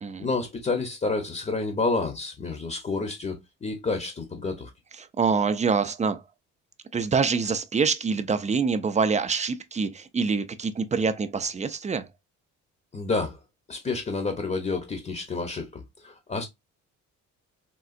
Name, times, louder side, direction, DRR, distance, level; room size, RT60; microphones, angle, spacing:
voice 1, 0.2-4.7 12.9-13.4 13.7-16.5, left 3 dB, 25° left, 0.8 m, -29 dB
voice 2, 5.0-6.2 6.9-12.1, right 5 dB, 25° right, 0.4 m, -25 dB
3.7 x 2.4 x 2.4 m
cardioid pair, 90°, 30 cm